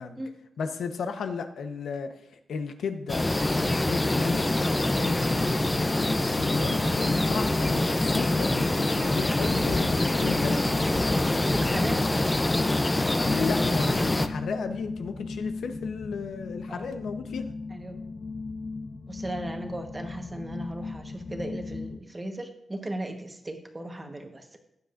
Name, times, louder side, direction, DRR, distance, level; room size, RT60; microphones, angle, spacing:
voice 1, 0.6-2.1 2.5-3.3 3.5-4.6 4.9-10.7 13.2-17.5, left 5 dB, 90° left, 7 dB, 0.9 m, -34 dB
sound 1, 3.1-14.3, left 1 dB, 15° left, 0.5 m, -25 dB
sound 2, 4.2-22.0, left 3 dB, 50° left, 0.8 m, -38 dB
voice 2, 11.3-12.1 16.7-17.0 17.7-18.0 19.1-24.6, right 1 dB, 20° right, 4 dB, 1.2 m, -37 dB
15.5 x 9.6 x 2.6 m, 0.79 s
wide cardioid pair, 125°, 0 cm